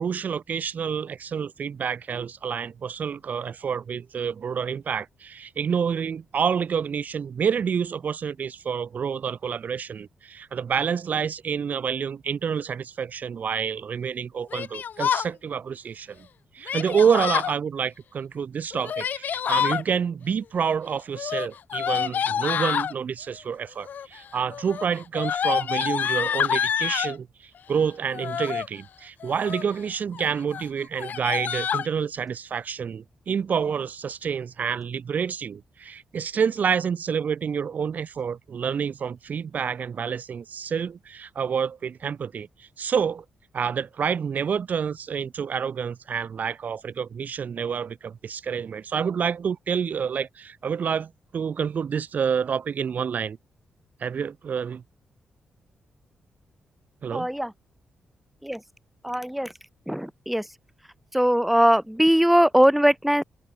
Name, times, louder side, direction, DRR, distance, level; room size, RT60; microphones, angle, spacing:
voice 1, 0.0-16.2 16.5-43.2 43.5-53.4 54.0-54.8 57.0-57.3, right 7 dB, 60° right, 1.6 m, -28 dB
Yell, 14.5-15.3 16.7-17.5 18.7-19.8 21.1-22.9 23.8-24.2 24.5-27.2 28.1-28.7 29.2-29.7 30.1-30.3 30.5-30.6 31.0-31.9, left 8 dB, 70° left, 1.7 m, -27 dB
voice 2, 57.1-57.5 58.4-58.6 59.0-59.5 59.9-60.5 61.1-63.2, equal, 5° right, 2.7 m, -20 dB
open air
supercardioid pair, 55°, 3 cm